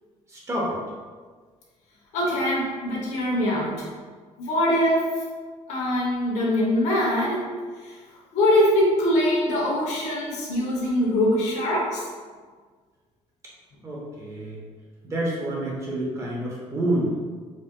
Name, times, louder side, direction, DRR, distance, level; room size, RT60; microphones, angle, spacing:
voice 1, 2.1-3.9 4.4-5.2 5.7-7.5 7.8-8.0 8.3-12.1, left 1 dB, 75° left, -4 dB, 1.0 m, -23 dB
voice 2, 13.8-14.6 15.0-17.1, right 1 dB, 25° right, -4 dB, 0.8 m, -28 dB
4.2 x 2.5 x 2.3 m, 1.5 s
cardioid pair, 145°, 12 cm